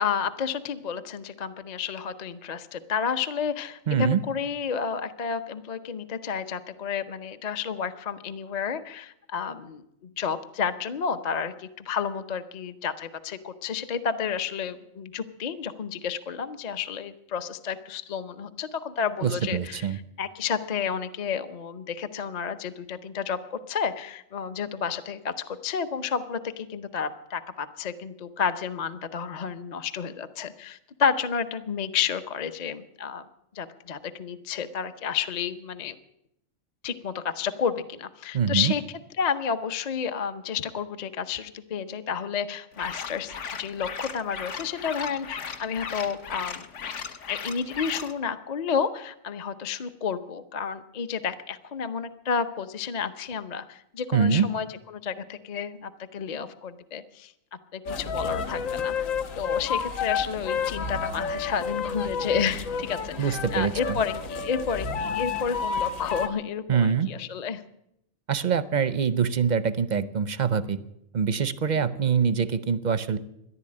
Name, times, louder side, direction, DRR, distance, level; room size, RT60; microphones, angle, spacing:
voice 1, 0.0-19.9 20.2-33.3 33.5-36.0 36.8-38.8 39.2-46.6 47.3-57.3 57.7-59.1 59.3-67.6 71.7-71.9, left 6 dB, 40° left, 10 dB, 0.7 m, -31 dB
voice 2, 3.9-4.2 19.2-20.0 38.3-38.7 54.1-54.5 63.2-64.0 66.7-67.1 68.3-70.8 71.1-73.2, right 7 dB, 50° right, 14 dB, 0.6 m, -24 dB
sound 1, 42.7-48.1, left 6 dB, 65° left, 1.2 m, -36 dB
sound 2, 57.9-66.3, left 5 dB, 85° left, 1.4 m, -30 dB
14.0 x 11.0 x 8.6 m, 0.79 s
omnidirectional pair, 1.4 m